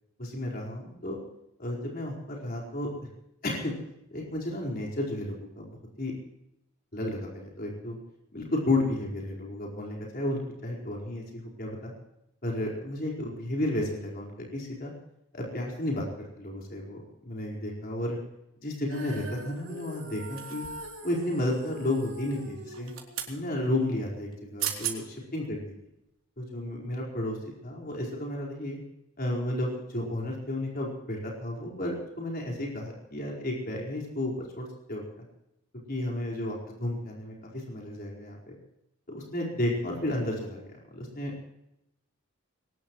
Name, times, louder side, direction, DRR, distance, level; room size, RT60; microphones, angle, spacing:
voice 1, 0.2-1.2 1.6-2.9 3.4-3.8 4.1-6.1 6.9-8.0 8.3-11.9 12.4-14.9 15.3-16.1 16.4-18.2 18.6-20.6 21.0-22.9 23.3-25.7 26.4-27.4 27.6-28.8 29.2-35.2 35.9-38.5 39.1-41.3, left 1 dB, 45° left, -2 dB, 4.8 m, -32 dB
Female singing, 18.9-25.1, right 1 dB, 60° right, 7.0 m, -44 dB
sound 1, 20.4-21.0 22.7-23.4 24.3-24.4 24.6-25.0 25.5-25.7, right 10 dB, 75° right, 3.2 m, -35 dB
22.0 x 19.0 x 3.2 m, 0.84 s
head